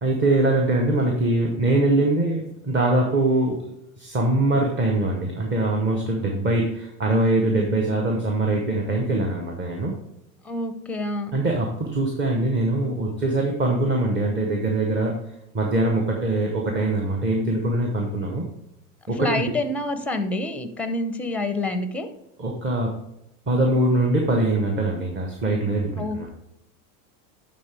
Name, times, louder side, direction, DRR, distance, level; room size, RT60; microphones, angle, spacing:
voice 1, 0.0-3.7 4.0-9.9 11.3-15.2 15.5-18.5 19.1-19.5 22.4-23.0 23.5-26.3, right 2 dB, 25° right, 0 dB, 1.1 m, -23 dB
voice 2, 10.4-11.4 19.2-22.1 26.0-26.3, left 2 dB, 5° left, 9 dB, 0.6 m, -27 dB
10.5 x 3.9 x 3.4 m, 0.83 s
supercardioid pair, 120°, 44 cm